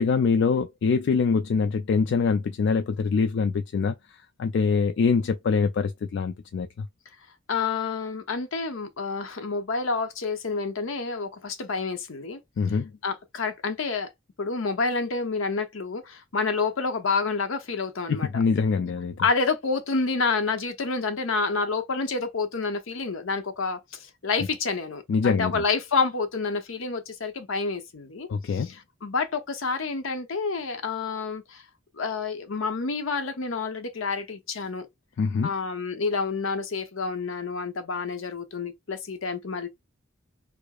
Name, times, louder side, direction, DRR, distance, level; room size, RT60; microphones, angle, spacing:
voice 1, 0.0-3.9 4.4-6.9 12.6-12.9 18.1-19.2 25.1-25.6 28.3-28.7 35.2-35.5, left 5 dB, 60° left, 0.3 m, -24 dB
voice 2, 7.5-12.4 13.0-14.1 14.4-18.4 19.2-31.6 31.9-34.9 35.4-39.7, left 4 dB, 75° left, 0.8 m, -28 dB
4.7 x 2.1 x 2.2 m
head